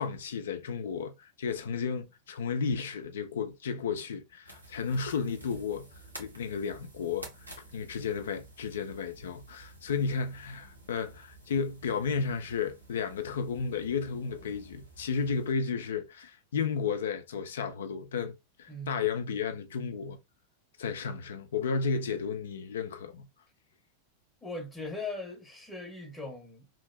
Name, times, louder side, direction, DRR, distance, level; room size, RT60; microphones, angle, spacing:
voice 1, 0.0-5.9 6.2-7.3 7.7-20.2 20.8-23.3, left 5 dB, 65° left, 0.4 m, -33 dB
sound 1, 4.4-15.5, right 2 dB, 85° right, 1.0 m, -51 dB
voice 2, 18.7-19.0 24.4-26.7, left 2 dB, 10° left, 0.8 m, -39 dB
2.9 x 2.5 x 3.1 m
figure-of-eight pair, 90°, 0 cm